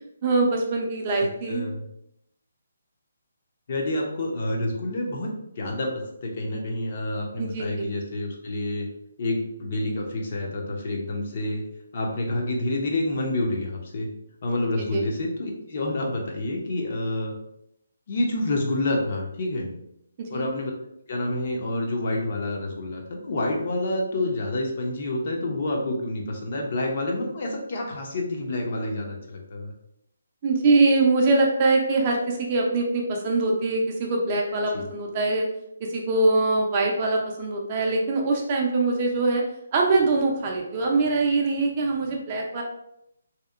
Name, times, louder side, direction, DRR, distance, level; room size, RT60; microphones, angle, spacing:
voice 1, 0.2-1.6 7.4-7.9 14.9-15.0 20.3-20.5 30.4-35.5 35.9-39.4 39.7-42.6, right 3 dB, 30° right, 0 dB, 0.4 m, -23 dB
voice 2, 1.2-1.9 3.7-8.9 9.2-11.6 11.9-14.1 14.4-17.3 18.1-19.7 20.3-20.7 21.1-29.7 34.7-34.9, left 1 dB, 50° left, 0 dB, 0.5 m, -28 dB
2.7 x 2.0 x 2.3 m, 0.77 s
hypercardioid pair, 160°, 0 cm